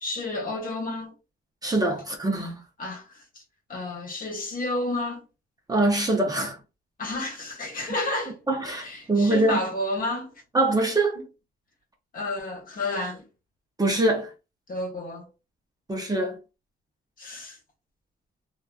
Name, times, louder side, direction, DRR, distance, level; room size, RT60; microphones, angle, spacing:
voice 1, 0.0-1.1 2.8-3.0 3.7-5.2 7.0-8.4 8.6-10.3 12.1-13.2 14.7-15.3 17.2-17.6, left 2 dB, 45° left, 1.2 m, -31 dB
voice 2, 1.6-2.6 5.7-6.6 8.5-9.6 10.5-11.2 13.8-14.3 15.9-16.4, right 2 dB, 20° right, 0.6 m, -23 dB
2.9 x 2.3 x 2.3 m
cardioid pair, 90°, 20 cm